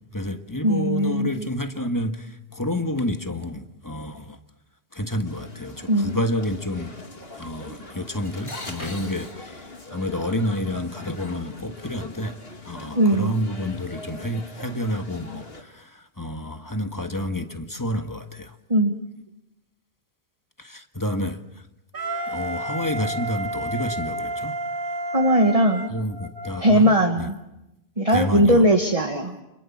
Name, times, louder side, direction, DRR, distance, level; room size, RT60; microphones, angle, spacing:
voice 1, 0.0-4.4 4.9-7.0 7.4-18.6 20.6-21.6 22.3-24.5 25.9-27.3 28.1-28.6, left 1 dB, 20° left, 1.7 m, -29 dB
voice 2, 0.6-1.5 5.9-6.1 13.0-13.3 18.7-19.0 25.1-25.9 26.6-27.4 28.0-29.4, right 1 dB, 30° right, 1.9 m, -19 dB
sound 1, 5.2-15.6, left 2 dB, 65° left, 2.8 m, -42 dB
Crackle, 8.2-9.9, left 1 dB, 85° left, 8.4 m, -43 dB
Wind instrument woodwind instrument, 21.9-26.7, right 1 dB, 55° right, 1.8 m, -31 dB
30.0 x 27.0 x 7.3 m
omnidirectional pair, 1.1 m